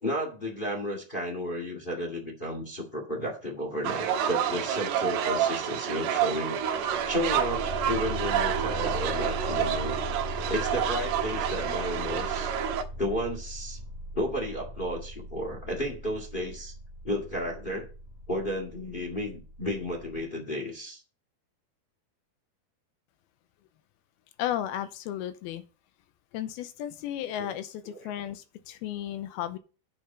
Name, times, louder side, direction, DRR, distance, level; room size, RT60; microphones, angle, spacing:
voice 1, 0.0-6.7 7.1-9.9 10.5-12.5 13.0-13.8 14.1-16.7 17.0-17.9 18.3-21.0 27.9-28.0, equal, 30° left, 1 dB, 0.9 m, -32 dB
sound 1, 3.8-12.8, right 9 dB, 90° right, 3.4 m, -29 dB
sound 2, 6.7-20.2, equal, 60° left, 3.2 m, -39 dB
voice 2, 24.4-25.6 26.3-29.6, left 11 dB, 85° left, 11 dB, 2.6 m, -34 dB
8.7 x 6.7 x 5.4 m, 0.35 s
omnidirectional pair, 4.5 m